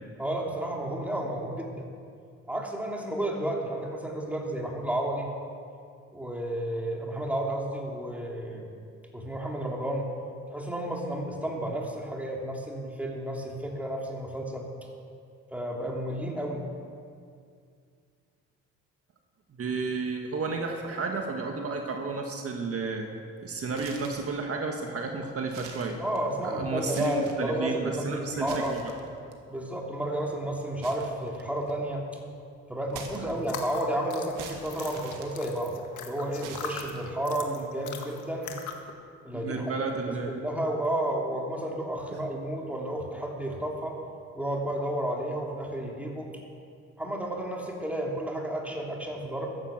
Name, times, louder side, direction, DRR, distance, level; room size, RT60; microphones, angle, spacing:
voice 1, 0.2-1.8 2.5-5.3 6.1-8.6 9.1-10.1 10.5-14.7 15.5-16.6 26.0-28.8 29.5-32.0 32.7-35.7 36.0-38.5 39.2-39.7 40.0-43.9 44.3-46.4 47.0-49.6, right 1 dB, 5° right, -1 dB, 3.2 m, -32 dB
voice 2, 19.6-23.1 23.4-26.0 26.4-28.9 33.2-33.3 39.3-40.4, right 4 dB, 50° right, 2 dB, 1.7 m, -32 dB
sound 1, 23.7-24.4 24.9-25.0 25.4-26.4 26.8-27.5 28.3-29.3 30.8-31.8 32.9-33.7 34.3-35.9 36.4-37.3, right 6 dB, 85° right, 2.0 m, -45 dB
sound 2, 33.4-38.9, left 6 dB, 80° left, 1.8 m, -41 dB
14.0 x 11.0 x 7.6 m, 2.3 s
cardioid pair, 90°, 30 cm